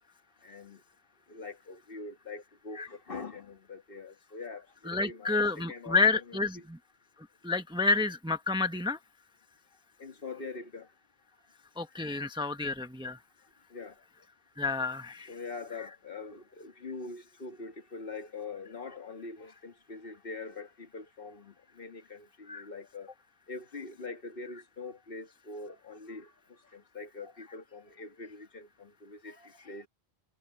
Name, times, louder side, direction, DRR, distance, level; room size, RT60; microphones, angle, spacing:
voice 1, 0.4-0.8 1.3-6.7 10.0-10.9 13.7-14.0 15.3-23.1 23.5-29.9, left 3 dB, 55° left, 1.7 m, -44 dB
voice 2, 4.9-6.8 7.4-9.0 11.8-13.2 14.6-15.3 22.5-22.6, left 3 dB, 5° right, 0.8 m, -29 dB
omnidirectional pair, 1.1 m